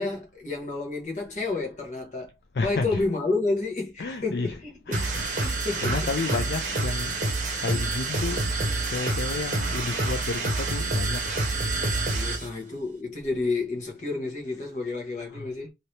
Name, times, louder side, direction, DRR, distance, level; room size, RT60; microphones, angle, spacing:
voice 1, 0.0-2.3 2.6-5.1 5.4-6.0 12.1-15.7, left 3 dB, 40° left, 1.1 m, -30 dB
voice 2, 2.5-3.0 4.0-4.6 4.9-8.4 8.9-11.8 12.0-12.4 15.3-15.5, left 3 dB, 60° left, 0.4 m, -32 dB
sound 1, 4.9-12.5, right 2 dB, 40° right, 0.9 m, -27 dB
2.8 x 2.8 x 3.2 m
head